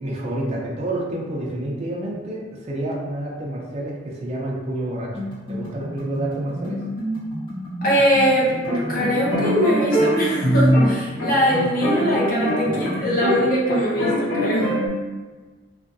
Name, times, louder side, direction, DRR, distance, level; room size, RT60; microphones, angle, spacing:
voice 1, 0.0-6.8, right 1 dB, 35° right, -3 dB, 0.5 m, -29 dB
sound 1, 5.1-13.1, equal, 30° left, 1.1 m, -31 dB
voice 2, 7.8-8.6 8.9-14.7, equal, 50° left, -5 dB, 0.7 m, -21 dB
sound 2, 8.7-13.4 13.7-14.9, equal, 80° left, 1.0 m, -22 dB
2.6 x 2.4 x 2.5 m, 1.3 s
head